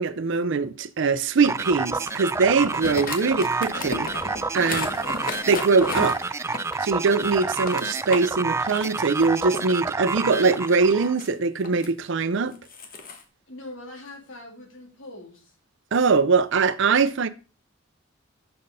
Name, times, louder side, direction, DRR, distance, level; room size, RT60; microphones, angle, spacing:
voice 1, 0.0-4.1 4.5-4.9 5.5-6.3 6.8-12.6 15.9-17.3, right 4 dB, 65° right, 0.5 m, -22 dB
sound 1, 1.4-8.3 8.6-9.7 10.3-11.9 12.5-13.2, left 3 dB, 45° left, 1.3 m, -35 dB
sound 2, 1.4-11.2, right 3 dB, 15° right, 0.3 m, -29 dB
voice 2, 4.7-5.1 13.5-15.6, left 1 dB, 75° left, 2.9 m, -42 dB
6.7 x 6.5 x 5.4 m
head